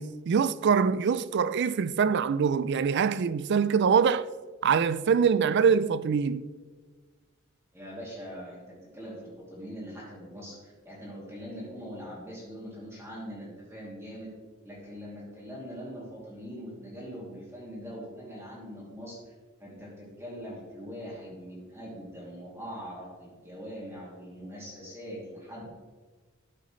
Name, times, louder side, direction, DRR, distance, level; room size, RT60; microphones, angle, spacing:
voice 1, 0.0-4.3 4.6-6.4, right 6 dB, 55° right, 0.4 m, -24 dB
voice 2, 7.7-14.3 14.6-19.2 19.6-25.7, equal, 15° right, 2.7 m, -42 dB
12.5 x 7.6 x 3.1 m
head